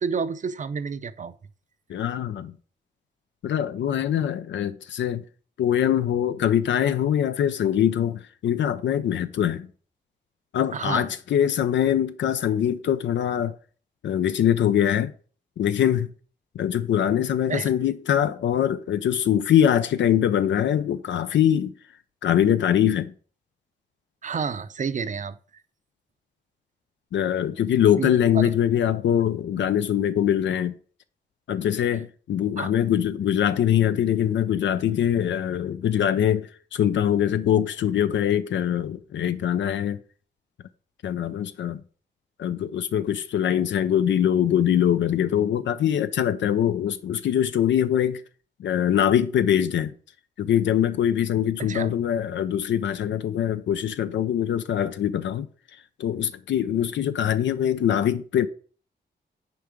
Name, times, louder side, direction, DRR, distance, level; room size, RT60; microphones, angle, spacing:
voice 1, 0.0-1.3 10.7-11.1 17.5-17.7 24.2-25.4 28.0-28.5 32.6-32.7 51.6-51.9, right 5 dB, 40° right, 0.6 m, -30 dB
voice 2, 1.9-2.6 3.4-5.2 5.6-9.7 10.5-13.5 14.0-15.1 15.6-16.1 16.5-21.7 22.2-23.1 27.1-30.7 31.5-40.0 41.0-41.8 42.4-48.2 48.6-49.9 50.4-55.5 56.0-58.5, left 10 dB, 80° left, 0.5 m, -23 dB
6.8 x 4.7 x 5.1 m
cardioid pair, 95°, 19 cm